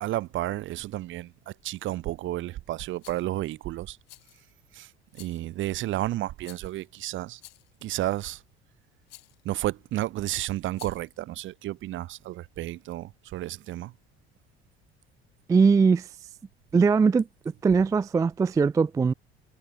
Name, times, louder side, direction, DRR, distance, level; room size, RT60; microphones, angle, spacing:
voice 1, 0.0-4.0 4.7-4.9 5.1-7.4 7.8-8.4 9.4-13.9, right 15 dB, 40° right, 0.7 m, -32 dB
Rattle, 3.0-3.3 4.1-4.5 5.1-5.5 6.4-6.9 7.4-7.8 9.1-9.4 10.7-11.1, left 17 dB, 65° left, 3.3 m, -51 dB
voice 2, 15.5-16.1 16.7-17.3 17.6-19.1, right 5 dB, 10° right, 0.4 m, -20 dB
figure-of-eight pair, 60°, 32 cm